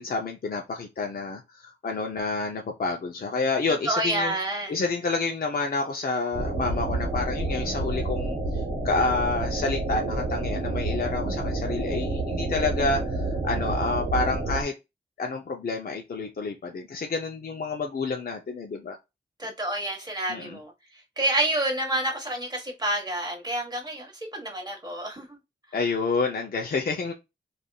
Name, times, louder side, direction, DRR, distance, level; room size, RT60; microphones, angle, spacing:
voice 1, 0.0-1.4 1.8-4.3 4.7-8.4 8.8-13.0 13.4-14.7 15.2-19.0 20.3-20.6 25.7-27.1, left 3 dB, 50° left, 0.5 m, -28 dB
voice 2, 3.8-4.8 19.4-20.7 21.2-25.3, right 1 dB, 20° right, 1.1 m, -28 dB
sound 1, 6.3-14.6, right 2 dB, 80° right, 0.8 m, -29 dB
3.4 x 2.5 x 2.2 m
wide cardioid pair, 75°, 20 cm